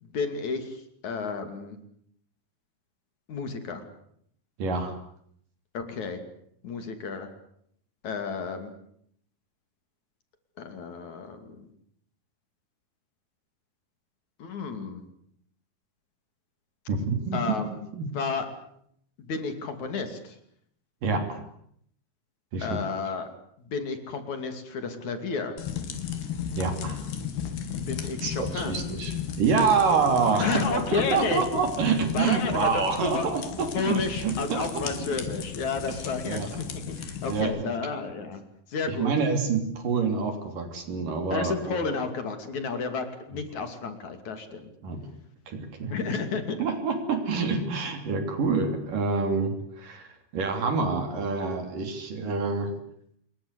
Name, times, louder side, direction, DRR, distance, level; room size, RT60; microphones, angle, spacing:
voice 1, 0.0-0.8 1.0-1.8 3.3-3.8 5.7-6.2 6.6-7.3 8.0-8.7 10.6-11.6 14.4-15.0 17.3-17.7 18.1-18.5 19.3-20.4 22.6-23.3 23.7-25.6 27.9-28.8 30.4-31.4 32.1-33.3 33.7-38.4 38.7-39.1 41.3-44.7 45.9-46.6, left 4 dB, 50° left, 8 dB, 3.8 m, -31 dB
voice 2, 4.6-4.9 16.9-17.6 17.9-18.1 21.0-21.4 22.5-22.8 26.6-27.0 28.2-34.9 35.9-36.0 36.2-36.6 37.3-37.8 39.0-42.0 44.8-45.0 45.5-45.9 46.6-52.7, right 4 dB, 60° right, 6 dB, 4.7 m, -27 dB
sound 1, 25.6-37.4, left 8 dB, 85° left, 4.5 m, -35 dB
26.5 x 22.0 x 8.3 m, 0.69 s
omnidirectional pair, 4.5 m